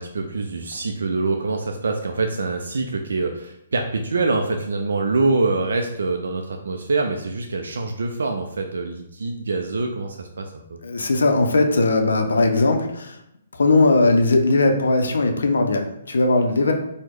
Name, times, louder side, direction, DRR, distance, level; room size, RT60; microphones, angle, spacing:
voice 1, 0.0-10.8, right 3 dB, 85° right, 3 dB, 0.3 m, -25 dB
voice 2, 10.8-13.2 13.5-16.7, left 2 dB, 85° left, 5 dB, 0.4 m, -19 dB
3.0 x 2.1 x 3.5 m, 0.78 s
hypercardioid pair, 150°, 0 cm